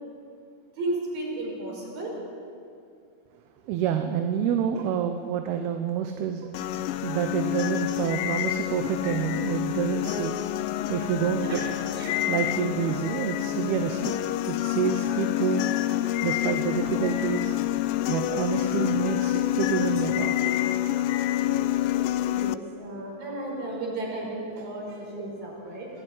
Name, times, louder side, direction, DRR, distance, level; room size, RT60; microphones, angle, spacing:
voice 1, 0.8-2.1 11.4-11.6 12.0-12.3 22.3-25.9, right 2 dB, 60° right, -2 dB, 7.1 m, -34 dB
voice 2, 3.6-6.5 6.9-10.6 10.9-11.6 12.3-15.7 16.2-17.6 18.1-20.6 24.6-25.0, right 8 dB, 80° right, 6 dB, 2.8 m, -28 dB
sound 1, 6.5-22.6, left 14 dB, 80° left, 2.0 m, -27 dB
24.5 x 15.5 x 9.3 m, 2.4 s
omnidirectional pair, 4.6 m